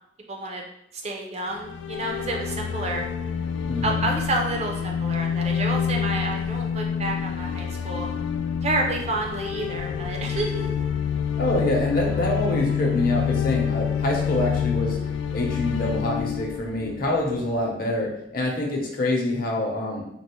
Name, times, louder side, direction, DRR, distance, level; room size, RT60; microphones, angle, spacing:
voice 1, 0.3-0.6 1.0-3.0 3.8-8.1 8.6-10.8, right 2 dB, 35° right, 1 dB, 0.5 m, -29 dB
sound 1, 1.5-17.6, left 7 dB, 80° left, 0.3 m, -27 dB
voice 2, 3.7-4.1 11.4-15.0 15.3-20.0, left 1 dB, 50° left, -2 dB, 0.7 m, -26 dB
4.0 x 2.0 x 2.8 m, 0.80 s
head